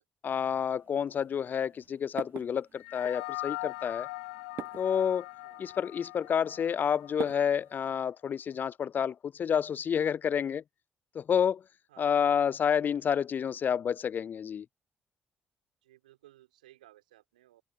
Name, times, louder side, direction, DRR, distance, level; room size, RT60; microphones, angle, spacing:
voice 1, 0.2-4.1 4.8-5.3 5.6-10.6 11.1-11.6 12.0-14.7, left 8 dB, 45° left, 0.5 m, -29 dB
sound 1, 0.6-7.9, right 10 dB, 55° right, 0.5 m, -47 dB
sound 2, 2.8-7.4, left 23 dB, 80° left, 0.8 m, -41 dB
voice 2, 11.9-12.3 15.8-17.6, right 15 dB, 85° right, 5.8 m, -59 dB
open air
hypercardioid pair, 45°, 4 cm